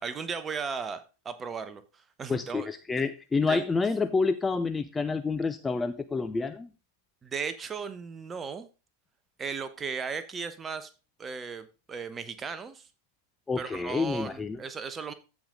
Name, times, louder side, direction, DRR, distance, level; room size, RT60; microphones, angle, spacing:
voice 1, 0.0-2.7 3.5-3.7 7.2-8.7 9.4-10.9 11.2-12.9 13.6-15.1, right 5 dB, 20° right, 12 dB, 1.0 m, -36 dB
voice 2, 2.3-6.7 13.5-14.6, left 4 dB, 15° left, 10 dB, 0.5 m, -28 dB
14.5 x 5.2 x 3.7 m, 0.32 s
figure-of-eight pair, 90°, 0 cm